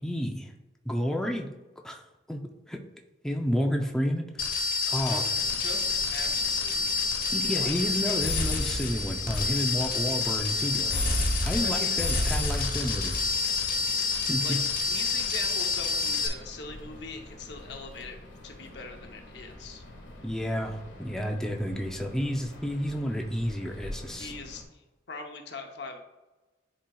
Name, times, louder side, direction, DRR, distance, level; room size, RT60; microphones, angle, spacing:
voice 1, 0.0-0.5 0.9-1.5 1.8-2.0 2.3-2.4 2.7-2.8 3.2-4.5 4.9-5.2 7.3-11.0 11.4-13.1 14.3-14.6 20.2-24.3, equal, 5° left, 1 dB, 0.5 m, -30 dB
sound 1, 4.4-16.3, left 3 dB, 45° left, 1.1 m, -28 dB
voice 2, 5.0-6.8 7.5-7.7 8.0-8.3 11.6-12.0 14.4-18.2 18.4-19.8 24.1-26.0, left 3 dB, 60° left, 3 dB, 0.8 m, -42 dB
sound 2, 5.3-24.6, left 1 dB, 80° left, 1.4 m, -46 dB
10.5 x 4.3 x 2.3 m, 1.1 s
head